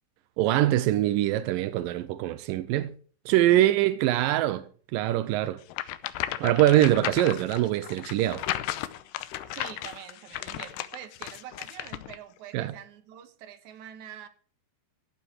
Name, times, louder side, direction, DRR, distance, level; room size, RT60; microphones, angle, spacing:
voice 1, 0.4-2.9 3.3-4.7 4.9-5.6 6.4-8.5 12.5-12.7, right 14 dB, 85° right, 1.9 m, -23 dB
sound 1, 5.7-12.2, left 14 dB, 85° left, 2.9 m, -35 dB
voice 2, 9.1-14.3, right 10 dB, 60° right, 2.3 m, -45 dB
14.5 x 8.8 x 6.2 m
omnidirectional pair, 4.8 m